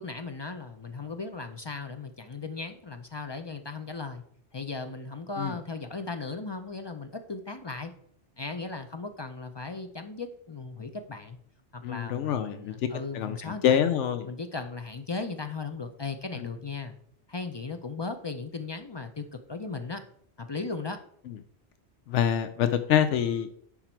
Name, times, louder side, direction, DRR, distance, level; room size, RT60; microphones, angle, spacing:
voice 1, 0.0-4.2 4.5-7.9 8.4-11.4 11.7-13.8 14.2-16.9 17.3-20.0 20.4-21.0, left 4 dB, 40° left, 7 dB, 0.3 m, -37 dB
voice 2, 11.8-14.3 16.3-16.5 21.3-21.4 22.1-23.5, left 9 dB, 85° left, 9 dB, 0.9 m, -26 dB
10.0 x 3.9 x 4.4 m, 0.65 s
omnidirectional pair, 1.2 m